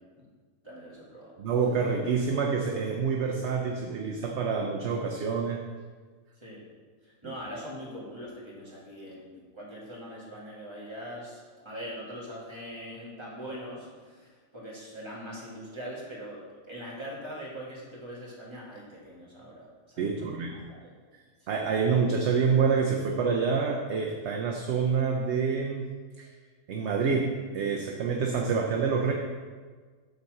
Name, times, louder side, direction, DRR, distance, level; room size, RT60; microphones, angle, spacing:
voice 1, 0.6-1.3 6.4-6.7 7.0-16.4 16.7-20.9 21.4-21.5, equal, 20° right, -6 dB, 2.1 m, -42 dB
voice 2, 1.4-5.6 20.0-20.5 21.5-25.9 26.2-26.3 26.7-29.1, right 5 dB, 60° right, 1 dB, 0.8 m, -27 dB
8.3 x 4.3 x 6.4 m, 1.5 s
omnidirectional pair, 1.6 m